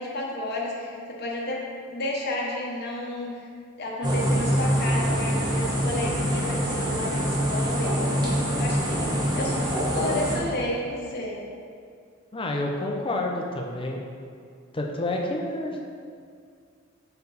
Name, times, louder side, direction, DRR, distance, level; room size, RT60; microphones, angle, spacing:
voice 1, 0.0-3.3 3.8-11.4, left 1 dB, 50° left, -2 dB, 1.0 m, -31 dB
sound 1, 4.0-10.4, equal, 20° right, 1.0 m, -25 dB
voice 2, 12.3-14.0 14.7-15.8, left 1 dB, 25° left, 0 dB, 0.6 m, -29 dB
6.6 x 4.6 x 4.1 m, 2.2 s
head